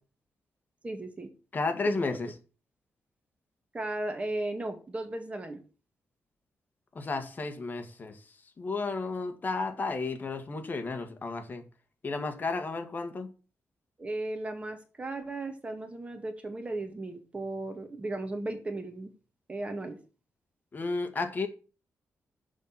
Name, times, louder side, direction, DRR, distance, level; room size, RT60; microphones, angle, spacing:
voice 1, 0.8-1.3 1.9-2.0 3.7-5.6 14.0-19.1 19.5-20.0, right 2 dB, 25° right, 2.1 m, -35 dB
voice 2, 1.5-2.3 7.0-8.2 8.6-11.6 12.0-13.3 20.7-21.5, left 3 dB, 35° left, 1.9 m, -33 dB
7.2 x 5.8 x 7.4 m
wide cardioid pair, 115°, 5 cm